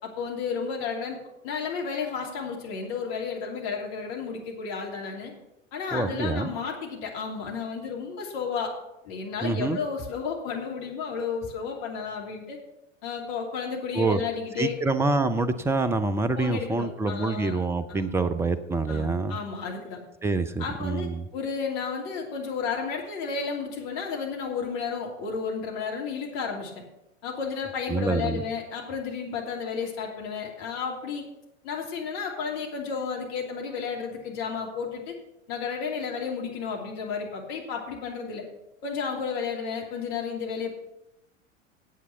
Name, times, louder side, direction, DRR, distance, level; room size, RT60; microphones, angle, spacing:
voice 1, 0.0-1.2 1.4-5.3 5.7-8.7 9.0-12.6 13.0-14.7 16.3-17.6 17.9-18.2 18.9-20.0 20.6-26.7 27.2-31.2 31.6-35.1 35.5-38.4 38.8-40.7, left 5 dB, 50° left, -1 dB, 3.0 m, -32 dB
voice 2, 5.9-6.5 9.4-9.8 13.9-14.2 14.6-19.4 20.2-21.3 27.9-28.4, right 3 dB, 5° right, 12 dB, 0.4 m, -26 dB
9.2 x 8.1 x 6.8 m, 0.90 s
figure-of-eight pair, 80°, 39 cm